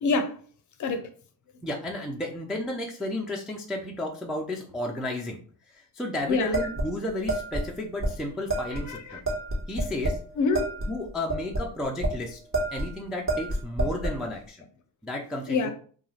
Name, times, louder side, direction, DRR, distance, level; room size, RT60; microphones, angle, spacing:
voice 1, 0.0-0.4 0.8-1.1 6.3-6.6 8.9-9.2 10.4-10.7 15.5-15.7, left 4 dB, 40° left, 0.6 m, -26 dB
voice 2, 1.6-5.4 5.7-9.2 9.7-10.2 10.9-12.4 12.7-14.7 15.0-15.7, left 1 dB, ahead, 0.3 m, -33 dB
sound 1, 6.5-7.7 8.0-8.1 8.5-8.8 9.3-10.2 10.5-12.2 12.5-12.9 13.3-14.2, right 1 dB, 30° right, 1.0 m, -28 dB
2.4 x 2.3 x 3.1 m
supercardioid pair, 80°, 46 cm